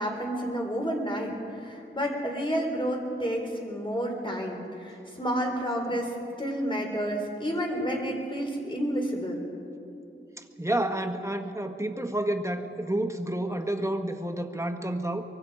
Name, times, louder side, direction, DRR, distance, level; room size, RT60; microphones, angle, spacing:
voice 1, 0.0-6.1 6.4-9.4, equal, 25° left, 1 dB, 4.1 m, -30 dB
voice 2, 10.4-15.2, right 1 dB, 15° right, 5 dB, 1.5 m, -30 dB
24.0 x 23.5 x 5.0 m, 2.6 s
wide cardioid pair, 55°, 21 cm